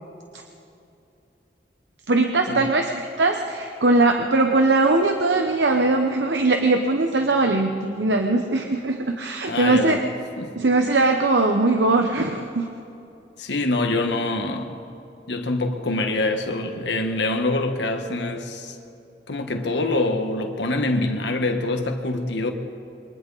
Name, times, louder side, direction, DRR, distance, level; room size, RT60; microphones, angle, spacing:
voice 1, 2.1-10.0 10.6-12.7, right 2 dB, 85° right, 1.1 m, -20 dB
voice 2, 9.5-10.0 10.4-10.5 13.4-14.8 15.3-18.8 19.3-22.5, left 2 dB, 85° left, 1.6 m, -25 dB
27.5 x 23.0 x 4.2 m
head